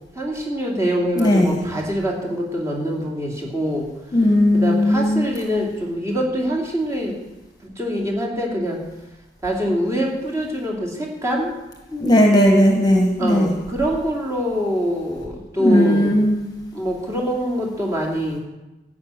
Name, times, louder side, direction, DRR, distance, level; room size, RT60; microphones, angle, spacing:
voice 1, 0.1-3.9 4.5-7.2 7.6-8.8 9.4-11.5 13.2-16.2 16.7-18.4, equal, 20° right, -2 dB, 2.7 m, -24 dB
voice 2, 1.2-1.6 4.1-5.4 11.9-13.5 15.6-16.5, left 1 dB, 25° left, 1 dB, 1.3 m, -17 dB
14.5 x 5.7 x 8.9 m, 1.0 s
head